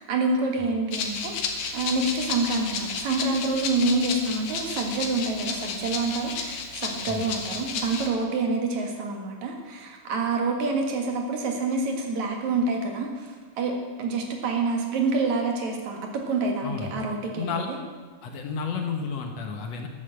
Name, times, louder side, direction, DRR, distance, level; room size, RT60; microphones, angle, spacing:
voice 1, 0.0-17.8, right 3 dB, 65° right, 2 dB, 2.9 m, -27 dB
Rattle (instrument), 0.9-8.1, left 5 dB, 90° left, 2.9 m, -32 dB
voice 2, 16.6-16.9 17.4-17.7 18.2-19.9, left 5 dB, 65° left, 4 dB, 2.1 m, -31 dB
12.5 x 9.0 x 7.8 m, 1.4 s
omnidirectional pair, 3.6 m